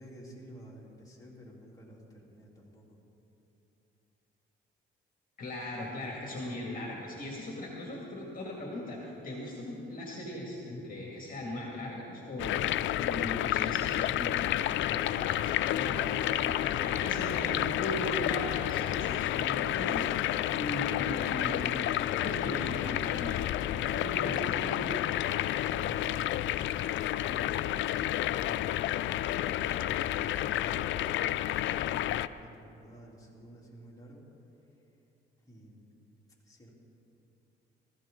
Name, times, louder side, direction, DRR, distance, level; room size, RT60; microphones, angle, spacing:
voice 1, 0.0-3.0 25.5-26.5 26.9-27.6 28.2-28.6 29.2-31.1 31.6-34.3 35.4-35.9 36.4-36.7, equal, 15° left, -4 dB, 3.5 m, -51 dB
voice 2, 5.4-12.7 12.9-20.1 20.5-23.4 23.7-24.9, left 1 dB, 45° left, -2 dB, 2.4 m, -38 dB
sound 1, 12.4-32.3, left 13 dB, 75° left, 0.4 m, -30 dB
19.0 x 14.5 x 3.9 m, 2.9 s
cardioid pair, 90°, 20 cm